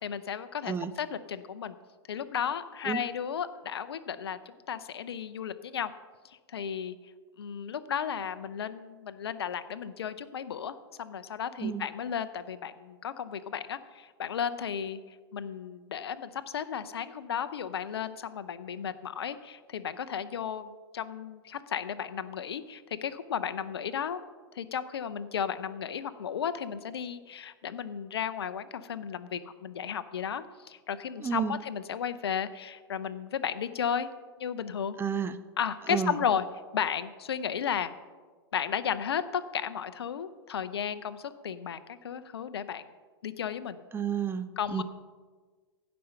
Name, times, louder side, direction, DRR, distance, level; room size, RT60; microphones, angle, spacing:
voice 1, 0.0-1.8 2.1-5.9 6.2-7.0 7.4-15.0 15.3-24.2 24.5-34.1 34.4-35.0 35.6-36.5 36.7-37.9 38.5-42.8 43.2-43.8 44.6-44.8, left 8 dB, 70° left, 12 dB, 0.6 m, -34 dB
voice 2, 31.2-31.6 35.0-35.4 35.9-36.2 43.9-44.8, right 6 dB, 15° right, 11 dB, 0.6 m, -31 dB
15.5 x 5.3 x 5.6 m, 1.4 s
figure-of-eight pair, 100°, 14 cm